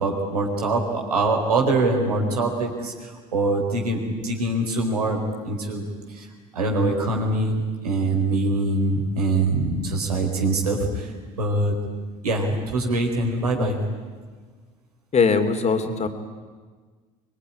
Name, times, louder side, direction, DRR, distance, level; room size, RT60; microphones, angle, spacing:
voice 1, 0.0-5.8 6.1-6.3 6.5-11.1 11.4-11.7 12.2-13.8, right 2 dB, 85° right, 1 dB, 4.4 m, -23 dB
voice 2, 15.1-16.1, left 5 dB, 35° left, 8 dB, 2.9 m, -20 dB
25.5 x 21.5 x 10.0 m, 1.5 s
hypercardioid pair, 65°, 19 cm